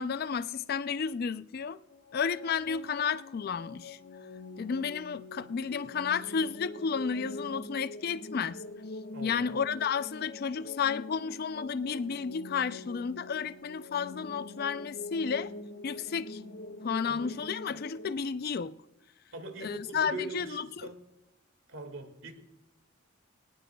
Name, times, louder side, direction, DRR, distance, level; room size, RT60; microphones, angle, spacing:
voice 1, 0.0-1.8 2.1-4.0 4.6-8.6 9.2-15.5 15.8-16.4 16.8-18.8 19.6-20.9, left 6 dB, 45° left, 0.4 m, -32 dB
sound 1, 1.9-18.1, left 2 dB, 80° left, 1.5 m, -44 dB
voice 2, 9.1-9.5 17.1-17.3 19.3-21.0 21.7-22.3, right 2 dB, 70° right, 1.9 m, -41 dB
19.0 x 19.0 x 2.3 m
head